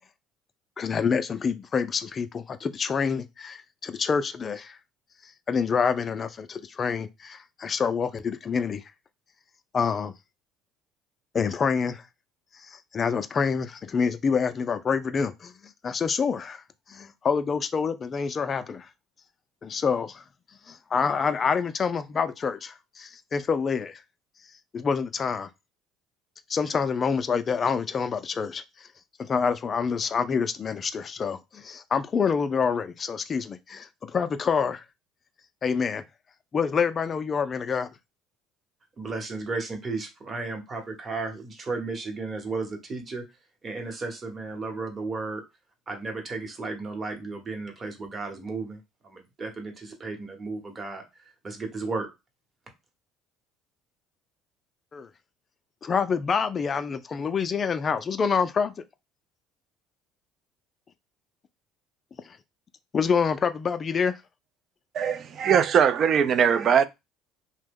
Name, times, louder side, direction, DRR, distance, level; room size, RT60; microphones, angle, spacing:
voice 1, 0.8-4.8 5.5-8.8 9.7-10.1 11.3-12.0 12.7-16.6 16.9-18.9 19.6-20.2 20.7-24.0 24.7-25.5 26.5-28.9 29.2-34.8 35.6-36.0 36.5-37.9 54.9-55.1 55.8-58.7 62.9-64.2, left 6 dB, 35° left, 0.3 m, -27 dB
voice 2, 39.0-43.2 43.6-45.4 45.9-52.1, right 3 dB, 30° right, 0.9 m, -34 dB
voice 3, 64.9-66.9, right 7 dB, 50° right, 0.3 m, -21 dB
2.8 x 2.1 x 3.5 m
supercardioid pair, 95°, 0 cm